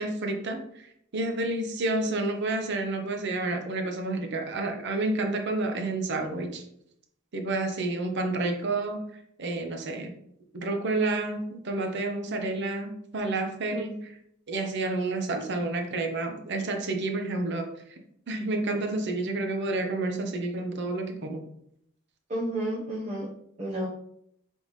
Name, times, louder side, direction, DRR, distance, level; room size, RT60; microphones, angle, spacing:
voice 1, 0.0-6.6 7.3-9.0 9.4-10.1 10.5-14.1 14.5-18.0 18.3-21.4, right 2 dB, 55° right, 5 dB, 0.7 m, -30 dB
voice 2, 22.3-23.3 23.6-23.9, right 1 dB, 35° right, -6 dB, 0.9 m, -31 dB
4.0 x 3.5 x 3.1 m, 0.72 s
head